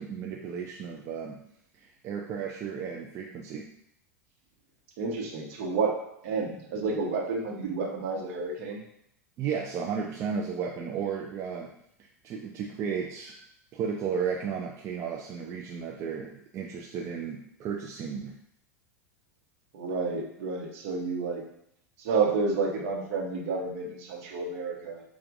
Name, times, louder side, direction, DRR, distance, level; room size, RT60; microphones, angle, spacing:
voice 1, 0.0-1.4 1.8-3.7 9.4-11.7 12.2-13.4 13.7-18.4, right 6 dB, 35° right, 0 dB, 0.5 m, -34 dB
voice 2, 5.0-5.9 6.2-8.8 19.7-21.4 22.0-25.0, right 4 dB, 55° right, -1 dB, 1.0 m, -30 dB
6.7 x 2.4 x 2.6 m, 0.74 s
figure-of-eight pair, 85°, 9 cm